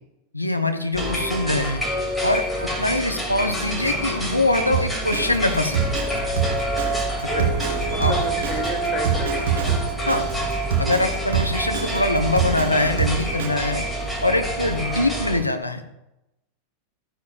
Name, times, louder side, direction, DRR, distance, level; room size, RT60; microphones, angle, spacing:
voice 1, 0.3-1.8 2.2-5.9 7.3-7.5 8.0-8.1 10.1-10.3 10.8-13.8 14.2-15.8, left 2 dB, 85° left, 6 dB, 0.9 m, -23 dB
sound 1, 0.9-15.4, right 1 dB, 5° left, 2.5 m, -27 dB
Drum kit, 4.7-13.5, right 7 dB, 55° right, 3.1 m, -25 dB
voice 2, 7.0-7.5 7.9-9.9, left 1 dB, 25° left, 1 dB, 2.4 m, -32 dB
14.0 x 10.0 x 2.4 m, 0.94 s
figure-of-eight pair, 90°, 0 cm